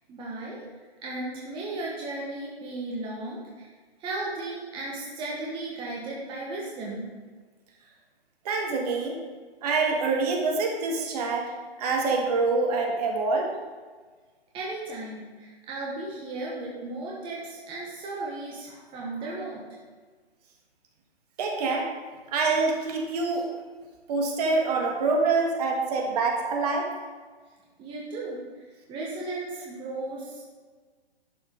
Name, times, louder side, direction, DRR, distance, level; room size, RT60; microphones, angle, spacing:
voice 1, 0.1-0.6 1.0-3.7 4.0-7.1 14.5-19.6 27.8-28.4 28.9-30.4, right 2 dB, 15° right, -4 dB, 1.4 m, -35 dB
voice 2, 8.5-9.2 9.6-11.5 11.8-13.5 21.4-21.9 22.3-23.5 24.1-26.9, right 3 dB, 40° right, 1 dB, 1.9 m, -25 dB
11.5 x 5.5 x 5.3 m, 1.4 s
hypercardioid pair, 140°, 31 cm